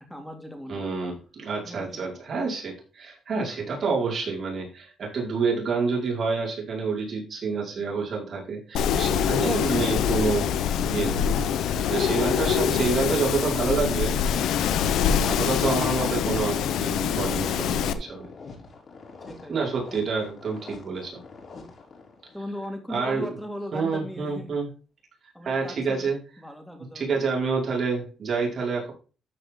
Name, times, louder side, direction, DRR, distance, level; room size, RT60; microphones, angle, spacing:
voice 1, 0.1-0.9 1.6-2.3 19.3-19.6 22.3-24.5 25.3-26.1 26.4-27.2, left 1 dB, ahead, 3 dB, 2.9 m, -38 dB
voice 2, 0.7-10.5 10.8-11.2 11.6-14.4 15.2-18.3 19.5-21.2 22.9-23.3 23.7-24.7 25.4-26.2 26.9-28.9, right 4 dB, 50° right, -2 dB, 5.0 m, -28 dB
Wind, 8.7-17.9, left 8 dB, 80° left, 0.8 m, -24 dB
sound 1, 14.0-22.4, left 4 dB, 50° left, 4.0 m, -46 dB
13.0 x 5.1 x 3.7 m, 0.37 s
cardioid pair, 90°, 0 cm